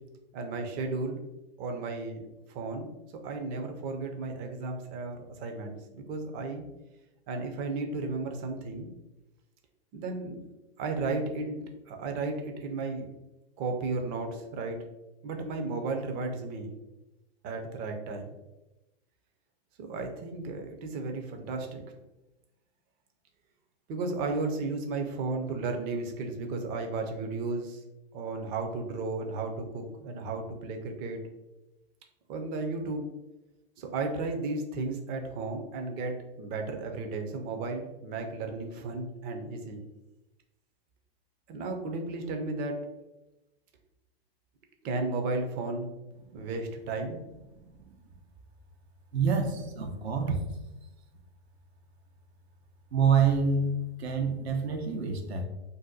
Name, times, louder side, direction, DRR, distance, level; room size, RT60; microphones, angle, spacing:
voice 1, 0.3-1.2 1.6-2.2 2.5-2.9 3.2-6.6 7.3-8.9 9.9-10.4 10.8-13.1 13.6-14.8 15.2-16.7 17.4-18.4 19.8-21.8 23.9-27.8 28.1-31.2 32.3-33.1 33.8-39.8 41.5-42.8 44.8-45.9 46.3-47.2, right 3 dB, 30° right, 4 dB, 0.5 m, -34 dB
voice 2, 47.5-48.0 49.1-50.4 52.9-55.5, right 5 dB, 80° right, 5 dB, 0.7 m, -27 dB
2.6 x 2.1 x 3.8 m, 0.99 s
hypercardioid pair, 125°, 32 cm